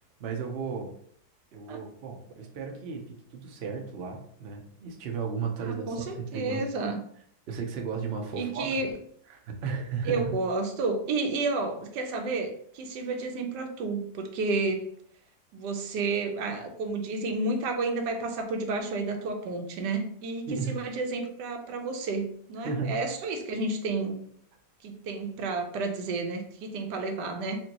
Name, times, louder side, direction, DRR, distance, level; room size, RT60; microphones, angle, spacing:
voice 1, 0.2-0.9 1.5-3.0 3.3-6.1 6.3-6.6 7.5-8.7 9.3-10.2 20.5-20.7 22.6-23.0, right 5 dB, 60° right, 2 dB, 0.6 m, -34 dB
voice 2, 5.6-7.0 8.3-9.0 10.0-14.9 15.5-24.1 24.8-27.6, right 3 dB, 90° right, 4 dB, 1.3 m, -31 dB
4.4 x 2.6 x 2.8 m, 0.63 s
omnidirectional pair, 1.8 m